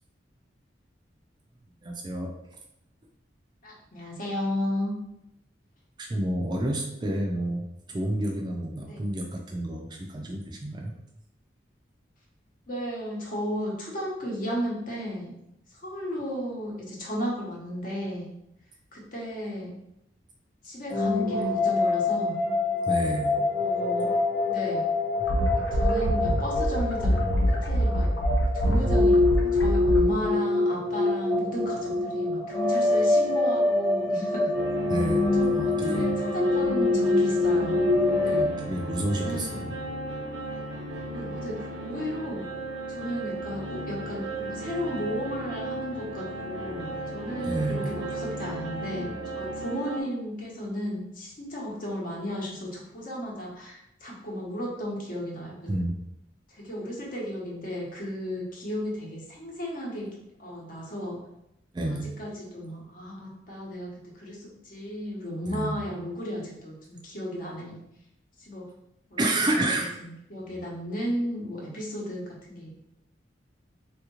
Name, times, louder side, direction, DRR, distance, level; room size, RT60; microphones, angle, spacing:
voice 1, 1.8-2.3 6.0-10.9 22.9-23.4 34.9-36.1 38.3-39.7 47.5-48.0 55.7-55.9 61.7-62.1 65.5-65.8 69.2-69.9 70.5-70.6, right 1 dB, 25° right, 1 dB, 0.3 m, -30 dB
voice 2, 3.6-5.0 8.9-9.0 12.7-15.3 15.7-18.3 18.9-19.8 20.6-22.4 23.5-24.1 24.5-24.9 25.7-27.2 27.6-28.1 28.5-34.5 35.3-37.8 38.2-38.5 39.1-39.5 41.1-42.4 42.9-55.7 56.5-60.1 60.4-61.2 61.9-63.9 64.2-67.8 68.4-68.7 69.1-69.2 69.6-72.7, equal, 50° left, -3 dB, 0.9 m, -34 dB
sound 1, 20.9-38.4, left 2 dB, 25° left, 1.0 m, -25 dB
sound 2, 25.2-30.1, equal, 85° left, 0.6 m, -25 dB
sound 3, 34.5-50.0, right 2 dB, 80° right, 0.6 m, -35 dB
3.4 x 2.4 x 3.0 m, 0.83 s
head